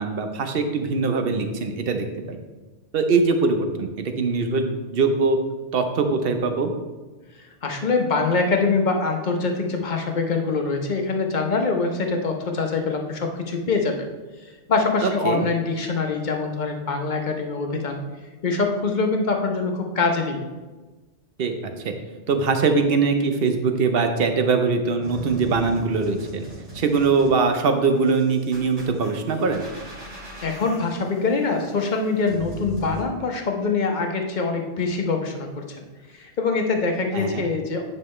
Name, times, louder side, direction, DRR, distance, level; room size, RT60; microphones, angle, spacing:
voice 1, 0.0-2.4 2.9-5.4 5.7-6.7 15.0-15.5 21.4-21.9 22.3-26.5 26.7-29.6 37.1-37.5, right 4 dB, 55° right, 6 dB, 0.9 m, -22 dB
voice 2, 7.6-14.1 14.4-18.0 18.4-20.4 30.4-35.8 36.1-37.9, left 4 dB, 45° left, 3 dB, 0.9 m, -24 dB
sound 1, 25.0-33.0, right 2 dB, 75° right, 2.6 m, -39 dB
8.9 x 5.3 x 3.2 m, 1.2 s
omnidirectional pair, 1.2 m